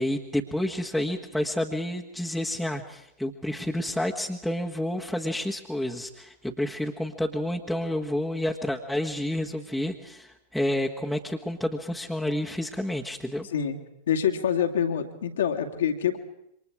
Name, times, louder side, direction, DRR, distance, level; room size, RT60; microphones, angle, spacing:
voice 1, 0.0-13.5, left 1 dB, ahead, -2 dB, 1.6 m, -29 dB
voice 2, 14.1-16.2, left 8 dB, 65° left, 4 dB, 2.4 m, -26 dB
28.0 x 25.0 x 4.9 m, 0.80 s
figure-of-eight pair, 90°, 0 cm